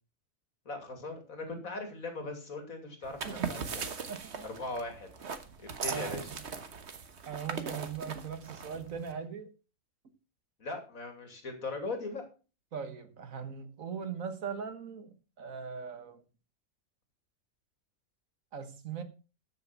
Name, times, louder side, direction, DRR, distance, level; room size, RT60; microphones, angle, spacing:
voice 1, 0.6-3.8 4.4-5.1 5.6-6.3 10.6-12.2, left 3 dB, 85° left, 3.2 m, -39 dB
sound 1, 3.0-9.1, right 5 dB, 55° right, 1.5 m, -39 dB
voice 2, 4.1-4.5 5.9-6.2 7.3-9.5 12.7-16.2 18.5-19.0, right 7 dB, 75° right, 1.8 m, -40 dB
13.5 x 6.5 x 5.9 m
omnidirectional pair, 1.4 m